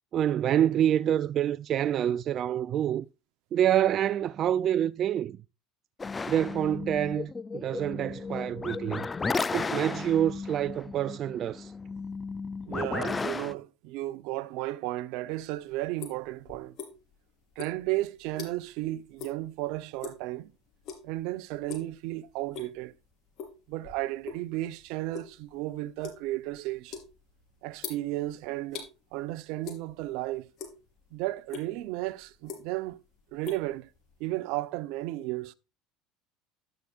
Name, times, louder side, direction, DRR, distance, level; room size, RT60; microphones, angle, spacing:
voice 1, 0.1-3.0 3.5-5.4 6.3-9.1 9.5-11.7, right 10 dB, 45° right, 0.4 m, -27 dB
sound 1, 6.0-13.5, left 4 dB, 20° left, 0.4 m, -34 dB
voice 2, 12.7-16.8 17.6-20.5 21.0-22.9 23.7-27.0 27.6-28.9 29.1-30.5 31.1-33.0 33.3-33.9 34.2-35.5, right 17 dB, 70° right, 0.8 m, -34 dB
sound 2, 15.3-17.2 17.5-18.8 19.2-19.4 19.8-20.3 20.8-21.2 21.5-21.9 22.3-22.9 23.4-24.5 24.8-28.9 29.6-30.2 30.4-31.1 31.5-31.7 32.2-32.9 33.2-34.3, left 6 dB, 55° left, 4.8 m, -42 dB
12.0 x 10.5 x 2.5 m
supercardioid pair, 110°, 0 cm